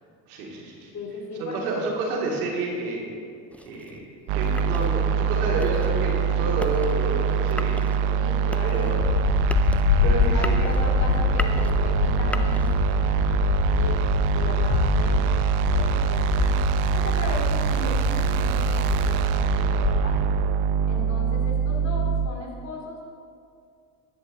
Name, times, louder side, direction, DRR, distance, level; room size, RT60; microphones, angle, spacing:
voice 1, 0.3-1.0 1.4-3.3 3.6-4.1 4.3-8.3 8.6-9.1 10.0-10.7, right 2 dB, 85° right, -2 dB, 2.5 m, -30 dB
voice 2, 0.9-1.8 8.1-8.9 10.0-14.0 14.3-15.2 15.7-16.6 16.9-20.2 20.9-23.1, left 2 dB, 35° left, 0 dB, 2.6 m, -36 dB
sound 1, 3.5-13.2, left 1 dB, 5° left, 0.4 m, -38 dB
sound 2, 4.3-22.3, right 7 dB, 65° right, 0.7 m, -24 dB
sound 3, 9.0-20.5, left 8 dB, 60° left, 0.9 m, -26 dB
10.5 x 10.5 x 3.9 m, 2.3 s
supercardioid pair, 90°, 43 cm